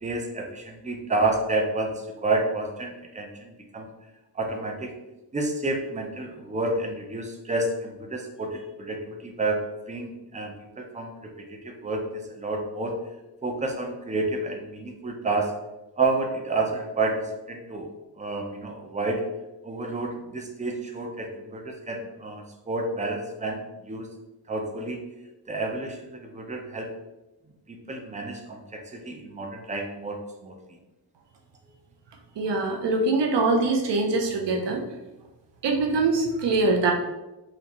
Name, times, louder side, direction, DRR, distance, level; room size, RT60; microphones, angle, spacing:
voice 1, 0.0-3.9 4.3-4.9 5.3-13.0 13.4-15.5 16.0-17.9 18.2-19.2 19.6-24.1 24.5-25.0 25.5-26.9 27.7-30.6, right 2 dB, 15° right, 3 dB, 0.5 m, -30 dB
voice 2, 32.4-34.8 35.6-36.9, right 3 dB, 75° right, 2 dB, 0.7 m, -23 dB
4.0 x 3.1 x 2.9 m, 1.0 s
wide cardioid pair, 110°, 43 cm